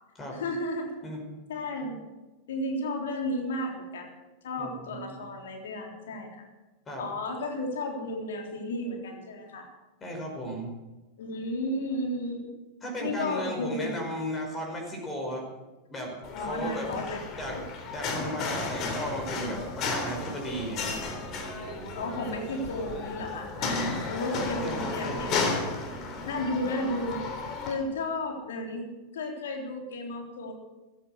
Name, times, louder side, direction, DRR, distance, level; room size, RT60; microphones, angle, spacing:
voice 1, 0.3-0.9 1.5-2.0 2.5-4.1 4.4-6.5 7.0-9.7 11.2-12.5 13.0-13.9 16.3-17.7 21.9-25.4 26.3-27.2 27.7-30.5, left 1 dB, 60° left, 2 dB, 3.6 m, -33 dB
voice 2, 4.6-5.2 6.9-7.0 10.0-10.7 12.8-15.5 15.9-16.9 17.4-17.6 17.9-21.1 24.6-25.3, equal, 20° left, 0 dB, 5.3 m, -35 dB
sound 1, 16.2-27.7, left 4 dB, 35° left, 3.5 m, -33 dB
sound 2, 18.5-26.2, right 5 dB, 20° right, 1.4 m, -46 dB
15.5 x 14.5 x 6.5 m, 1.1 s
figure-of-eight pair, 90°, 0 cm